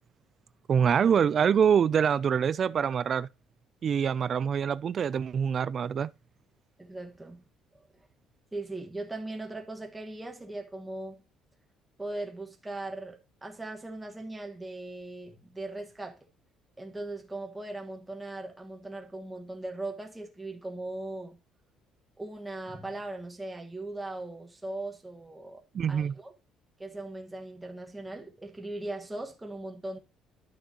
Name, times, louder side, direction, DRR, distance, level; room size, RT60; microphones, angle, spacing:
voice 1, 0.7-3.3 3.8-6.1 25.7-26.1, right 7 dB, 35° right, 0.3 m, -25 dB
voice 2, 6.8-7.4 8.5-11.2 12.0-16.3 16.8-21.4 22.2-25.6 25.9-26.3 26.8-30.0, right 2 dB, 10° right, 1.5 m, -39 dB
12.0 x 6.3 x 2.9 m
cardioid pair, 145°, 0 cm